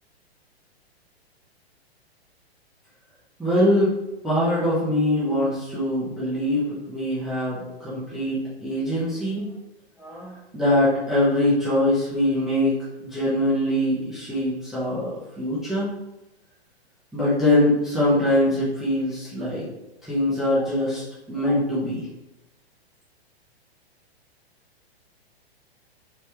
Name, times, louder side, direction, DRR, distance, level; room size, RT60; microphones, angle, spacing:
voice 1, 3.4-3.9 4.2-9.4 10.0-15.9 17.1-19.7 20.1-21.0 21.3-22.1, left 1 dB, ahead, -10 dB, 0.6 m, -23 dB
3.3 x 3.2 x 3.0 m, 0.97 s
figure-of-eight pair, 110°, 32 cm